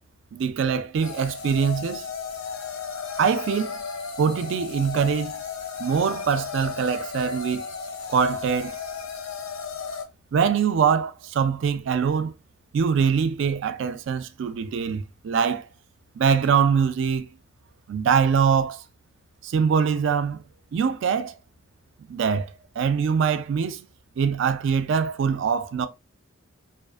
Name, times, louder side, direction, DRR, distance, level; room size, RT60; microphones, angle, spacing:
voice 1, 0.3-2.1 3.2-3.8 4.2-5.4 5.8-7.6 8.1-8.8 10.3-12.3 12.7-15.7 16.2-17.3 17.9-18.8 19.4-20.4 20.7-21.4 22.1-23.8 24.2-25.9, right 6 dB, 60° right, 0.3 m, -23 dB
sound 1, 1.0-10.0, left 5 dB, 80° left, 0.6 m, -34 dB
2.4 x 2.4 x 2.3 m
head